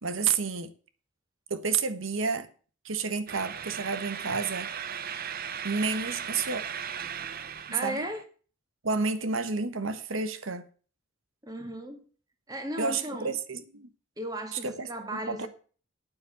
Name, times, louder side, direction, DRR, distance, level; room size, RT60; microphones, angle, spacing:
voice 1, 0.0-0.7 1.5-2.5 2.8-4.7 5.6-6.6 7.8-8.1 8.8-10.7 12.8-13.9 14.5-14.9 15.3-15.5, right 4 dB, 75° right, 1.3 m, -30 dB
sound 1, 3.3-8.2, right 8 dB, 45° right, 0.8 m, -37 dB
voice 2, 7.7-8.2 11.4-12.0 12.5-13.4 14.2-15.5, right 1 dB, 20° right, 2.1 m, -36 dB
9.0 x 7.5 x 7.8 m
head